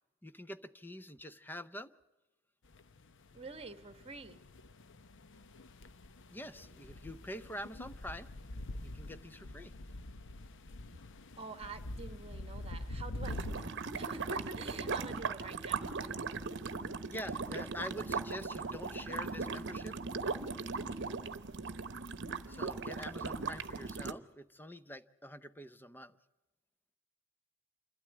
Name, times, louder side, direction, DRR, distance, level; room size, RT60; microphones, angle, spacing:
voice 1, 0.2-1.9 6.3-8.3 8.8-9.7 17.1-20.0 20.6-20.7 22.5-26.2, left 1 dB, 10° left, 12 dB, 0.6 m, -46 dB
sound 1, 2.7-13.7, left 1 dB, 65° left, 0.8 m, -46 dB
voice 2, 3.3-4.4 11.4-16.2, right 3 dB, 30° right, 9 dB, 1.4 m, -47 dB
sound 2, 13.2-24.1, right 4 dB, 60° right, 1.0 m, -38 dB
27.5 x 12.5 x 8.7 m, 1.1 s
head